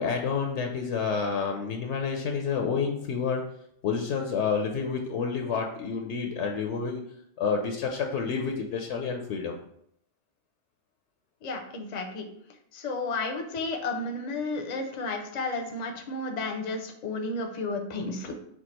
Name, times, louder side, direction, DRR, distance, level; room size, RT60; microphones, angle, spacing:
voice 1, 0.0-3.4 3.8-7.0 7.4-9.5, left 5 dB, 70° left, 3 dB, 0.8 m, -29 dB
voice 2, 11.4-12.2 12.7-18.3, left 3 dB, 45° left, 3 dB, 0.6 m, -32 dB
4.5 x 2.4 x 4.2 m, 0.70 s
omnidirectional pair, 1.2 m